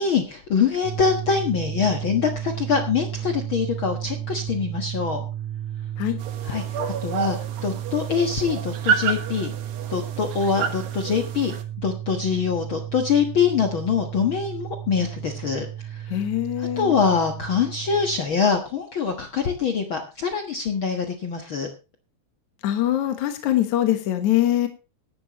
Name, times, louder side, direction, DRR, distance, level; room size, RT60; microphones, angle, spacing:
voice 1, 0.0-5.2 6.4-9.5 9.9-11.5 11.8-16.2 16.6-21.7, left 6 dB, 90° left, 4 dB, 1.1 m, -24 dB
sound 1, 0.8-18.2, right 11 dB, 70° right, 1.8 m, -33 dB
sound 2, 6.2-11.6, right 6 dB, 85° right, 3.7 m, -30 dB
voice 2, 16.1-17.0 22.6-24.7, left 12 dB, 60° left, 7 dB, 2.1 m, -23 dB
16.0 x 11.5 x 3.0 m, 0.30 s
omnidirectional pair, 4.7 m